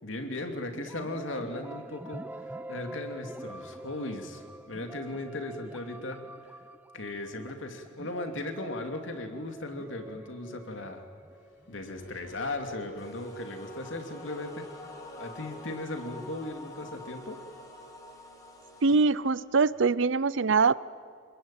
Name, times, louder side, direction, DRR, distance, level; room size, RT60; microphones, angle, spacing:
voice 1, 0.0-6.5 6.9-11.0 11.7-14.7 15.2-17.4, left 2 dB, 70° left, 5 dB, 2.8 m, -37 dB
sound 1, 0.7-12.5, right 1 dB, 10° right, 0.7 m, -46 dB
sound 2, 11.3-19.7, right 1 dB, 55° left, 3.5 m, -52 dB
sound 3, 13.0-19.0, left 2 dB, 15° left, 3.0 m, -47 dB
voice 2, 18.8-20.7, right 4 dB, 70° right, 19 dB, 0.6 m, -23 dB
27.0 x 20.5 x 9.1 m, 2.1 s
head